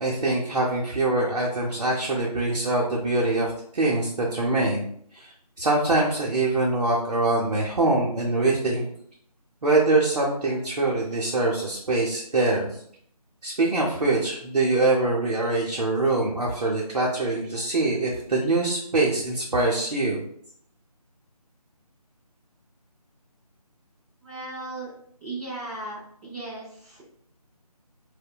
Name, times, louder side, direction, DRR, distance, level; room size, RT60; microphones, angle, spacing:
voice 1, 0.0-4.8 5.1-8.8 9.6-12.8 13.4-20.2, right 2 dB, 70° right, -4 dB, 0.6 m, -24 dB
voice 2, 24.2-24.9 25.2-27.1, right 2 dB, 5° right, -15 dB, 0.7 m, -36 dB
2.7 x 2.1 x 2.2 m, 0.64 s
figure-of-eight pair, 160°, 20 cm